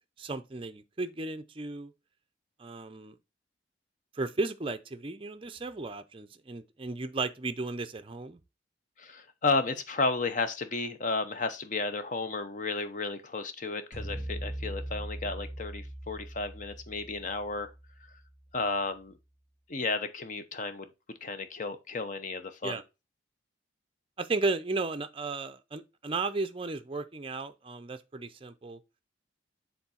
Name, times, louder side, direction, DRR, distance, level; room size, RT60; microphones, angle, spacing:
voice 1, 0.2-1.9 2.6-3.2 4.2-8.4 22.6-22.8 24.2-28.8, right 3 dB, 30° right, 0.5 m, -34 dB
voice 2, 9.0-17.7 18.5-19.2 19.7-20.9 21.2-22.8, left 3 dB, 40° left, 0.7 m, -33 dB
sound 1, 13.9-18.3, right 1 dB, 15° left, 2.0 m, -40 dB
7.1 x 3.8 x 4.2 m
head